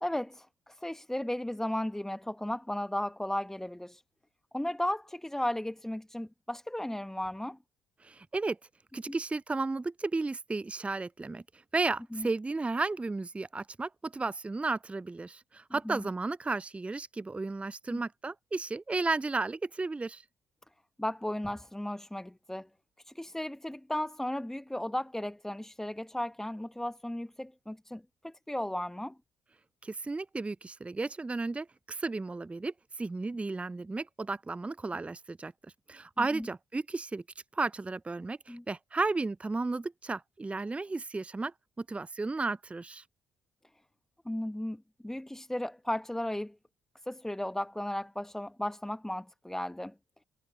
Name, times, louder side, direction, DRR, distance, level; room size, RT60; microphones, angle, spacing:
voice 1, 0.0-4.0 4.5-7.6 9.1-9.2 12.1-12.3 15.8-16.1 17.9-18.0 21.0-22.7 23.0-29.1 36.2-36.5 38.5-38.6 44.2-46.5 47.0-49.9, left 1 dB, 5° left, 1.1 m, -35 dB
voice 2, 8.0-8.6 8.9-11.4 11.7-20.2 29.8-35.5 35.9-37.2 37.5-43.0, right 3 dB, 15° right, 0.5 m, -33 dB
figure-of-eight pair, 45°, 8 cm